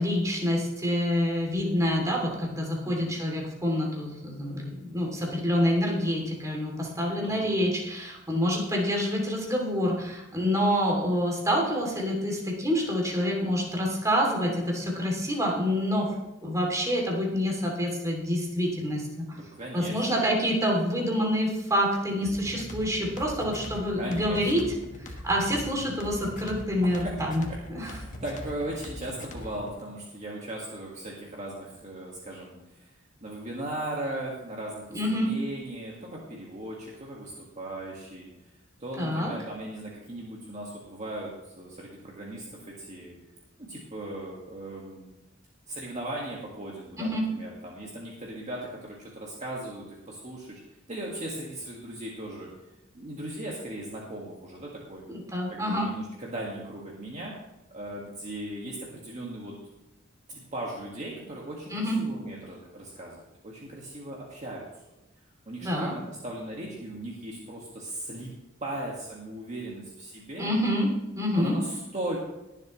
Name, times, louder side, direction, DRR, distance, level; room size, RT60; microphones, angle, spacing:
voice 1, 0.0-16.1 16.4-19.4 19.7-24.6 25.0-27.9 34.9-35.3 39.0-39.3 47.0-47.2 55.1-55.9 61.7-61.9 65.6-65.9 70.4-70.9 71.1-71.5, equal, 15° right, -2 dB, 2.9 m, -27 dB
voice 2, 7.2-7.7 19.3-20.2 22.1-22.5 24.0-24.5 26.8-27.1 27.8-32.9 33.2-38.3 38.8-43.1 43.7-45.0 45.7-50.6 50.9-52.5 52.9-55.0 55.5-57.3 57.7-59.5 60.3-64.7 65.5-68.3 68.6-70.5 71.3-72.2, right 1 dB, 35° right, -3 dB, 1.9 m, -38 dB
sound 1, 22.2-29.8, left 1 dB, 40° left, 1.4 m, -41 dB
21.0 x 7.5 x 3.2 m, 0.95 s
head